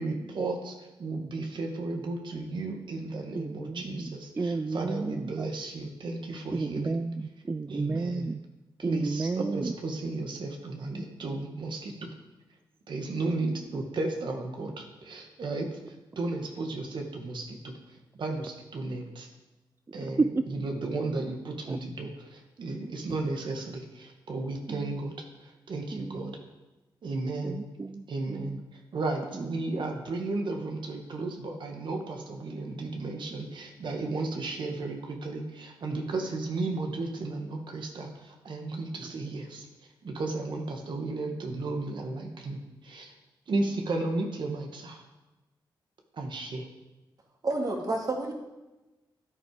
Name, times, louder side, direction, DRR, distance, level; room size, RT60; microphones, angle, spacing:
voice 1, 0.0-7.0 7.7-8.3 8.8-12.1 12.9-19.3 19.9-26.3 27.0-27.6 28.1-39.7 40.0-43.1 43.5-45.0 46.1-46.7, right 2 dB, 65° right, 3 dB, 1.9 m, -34 dB
voice 2, 3.3-5.2 6.5-8.4 8.8-9.7 20.2-20.3 21.7-21.8 24.7-24.9 25.9-26.3 27.4-28.6, right 3 dB, 25° right, 10 dB, 0.4 m, -32 dB
voice 3, 47.4-48.3, right 2 dB, 50° right, 1 dB, 2.7 m, -29 dB
13.0 x 9.8 x 5.1 m, 1.1 s
cardioid pair, 90°, 8 cm